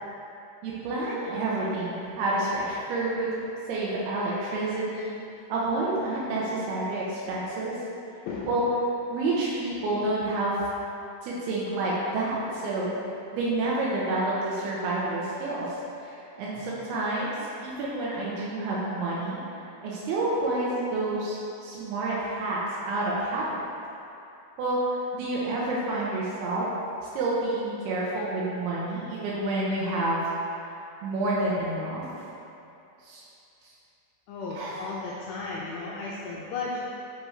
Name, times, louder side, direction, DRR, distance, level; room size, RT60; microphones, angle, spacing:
voice 1, 0.6-5.2 5.5-7.8 8.5-8.7 9.1-10.6 11.2-12.9 13.3-17.4 17.6-23.6 24.6-24.8 25.1-26.7 27.2-30.2 30.7-30.8 31.0-32.1 33.0-33.2 33.6-33.7 34.5-34.8, right 2 dB, 85° right, -6 dB, 2.2 m, -29 dB
voice 2, 8.3-8.6 34.3-36.8, left 3 dB, 85° left, -5 dB, 2.4 m, -34 dB
7.8 x 4.8 x 3.2 m, 2.8 s
omnidirectional pair, 5.4 m